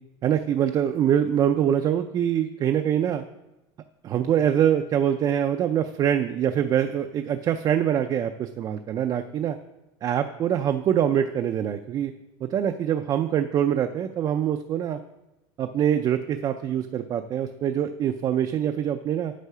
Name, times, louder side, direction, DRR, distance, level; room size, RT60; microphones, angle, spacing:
voice 1, 0.2-3.2 4.0-9.6 10.0-12.1 12.4-15.0 15.6-19.3, right 9 dB, 30° right, 7 dB, 0.4 m, -24 dB
8.2 x 7.9 x 5.6 m, 1.0 s
cardioid pair, 155°, 14 cm